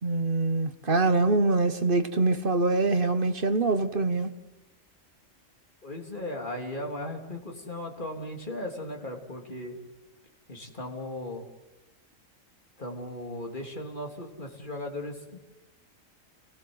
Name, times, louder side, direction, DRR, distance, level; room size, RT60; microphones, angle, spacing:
voice 1, 0.0-4.3, right 3 dB, 45° right, 1.3 m, -24 dB
voice 2, 5.8-9.8 10.5-11.4 12.8-15.2, left 1 dB, 40° left, 3.3 m, -37 dB
28.0 x 19.0 x 7.9 m
omnidirectional pair, 1.4 m